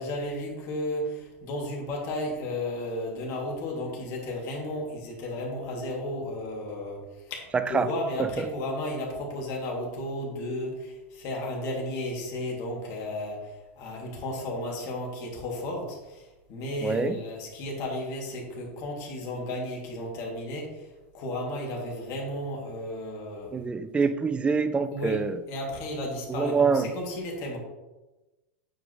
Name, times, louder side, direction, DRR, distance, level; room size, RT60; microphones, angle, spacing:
voice 1, 0.0-7.0 7.3-20.9 21.1-23.5 24.9-27.6, left 1 dB, 45° left, -2 dB, 2.4 m, -33 dB
voice 2, 16.8-17.2 23.5-25.4 26.3-26.9, right 5 dB, 15° right, 12 dB, 0.5 m, -25 dB
8.9 x 5.0 x 3.1 m, 1.1 s
hypercardioid pair, 120°, 8 cm